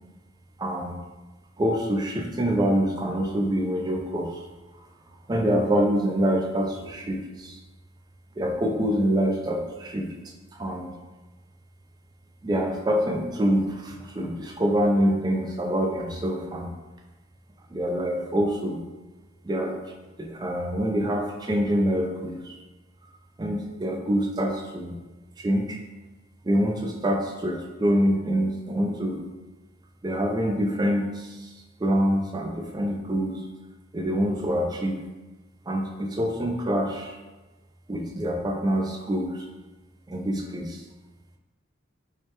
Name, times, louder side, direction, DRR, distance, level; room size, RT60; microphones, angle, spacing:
voice 1, 0.6-0.9 1.6-4.4 5.3-7.6 8.4-10.1 10.5-10.9 12.4-16.7 17.7-18.8 19.4-19.7 20.2-22.6 23.4-25.0 25.4-25.8 26.4-29.2 30.0-31.5 31.8-33.4 33.9-35.0 35.7-37.2 37.9-39.5 40.1-40.8, equal, 20° right, 1 dB, 0.4 m, -25 dB
4.8 x 2.2 x 2.9 m, 1.2 s
head